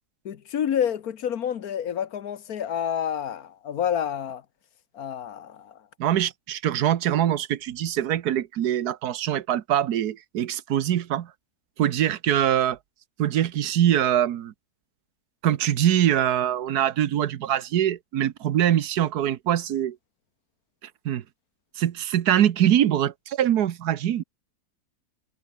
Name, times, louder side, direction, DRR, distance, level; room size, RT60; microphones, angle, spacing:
voice 1, 0.2-4.4 4.9-5.8, left 9 dB, 75° left, 1.6 m, -28 dB
voice 2, 6.0-11.3 11.8-12.8 13.2-14.5 15.4-20.0 21.0-21.2 21.8-24.2, right 11 dB, 90° right, 1.5 m, -23 dB
omnidirectional pair, 1.6 m